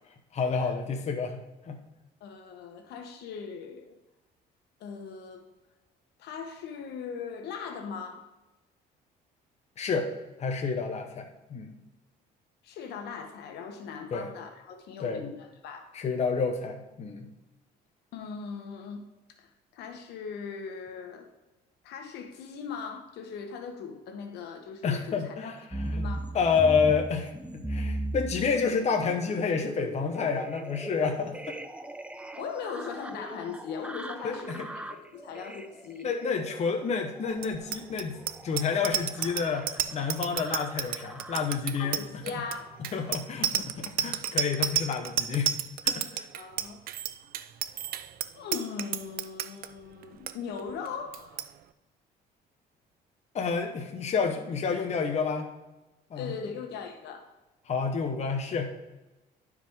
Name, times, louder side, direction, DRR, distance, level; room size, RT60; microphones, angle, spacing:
voice 1, 0.3-1.8 9.8-10.1 10.4-11.8 14.1-14.3 15.0-15.3 15.9-17.3 24.8-31.6 34.2-34.7 36.0-38.2 38.4-42.2 42.9-45.5 45.8-46.3 53.3-55.5 56.1-56.3 57.7-58.7, left 5 dB, 40° left, 4 dB, 1.0 m, -29 dB
voice 2, 2.2-4.0 4.8-5.4 6.2-8.3 12.6-15.9 18.1-19.0 19.4-19.5 19.7-21.3 21.8-25.5 25.9-26.3 32.4-36.1 41.8-42.8 46.4-46.8 48.3-51.5 56.2-57.3, left 6 dB, 80° left, 5 dB, 1.2 m, -39 dB
sound 1, 25.7-41.6 42.3-42.9 43.4-43.5, right 1 dB, 5° right, 0.5 m, -39 dB
Bicycle bell, 37.4-49.7 50.0-50.3 50.6-50.9 51.1-51.5, right 11 dB, 60° right, 0.5 m, -31 dB
11.0 x 4.8 x 3.6 m, 1.0 s
cardioid pair, 110°, 17 cm